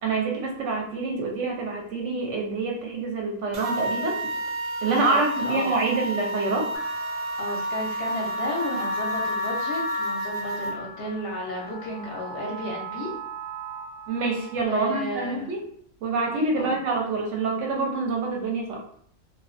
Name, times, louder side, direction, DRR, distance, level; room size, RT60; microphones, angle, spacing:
voice 1, 0.0-4.2 4.8-6.7 14.1-15.6 16.0-18.8, right 3 dB, 65° right, 0 dB, 0.8 m, -26 dB
sound 1, 3.5-10.7, right 1 dB, 85° right, 0.4 m, -30 dB
voice 2, 4.8-5.7 7.4-13.1 14.7-15.5 16.6-16.8, left 1 dB, 55° left, -2 dB, 0.7 m, -33 dB
sound 2, 6.7-14.6, left 1 dB, 25° right, 0.6 m, -37 dB
2.3 x 2.2 x 2.4 m, 0.62 s
omnidirectional pair, 1.5 m